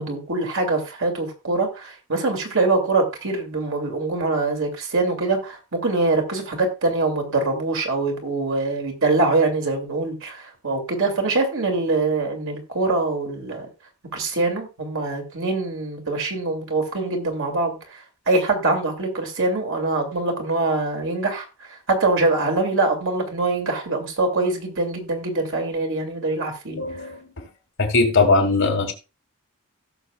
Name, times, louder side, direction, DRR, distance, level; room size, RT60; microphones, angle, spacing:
voice 1, 0.0-13.7 14.1-17.8 18.3-21.5 21.9-26.8, right 3 dB, 65° right, 2.6 m, -23 dB
voice 2, 26.7-27.5 27.8-28.9, left 3 dB, 60° left, 2.5 m, -20 dB
17.5 x 6.6 x 2.4 m
head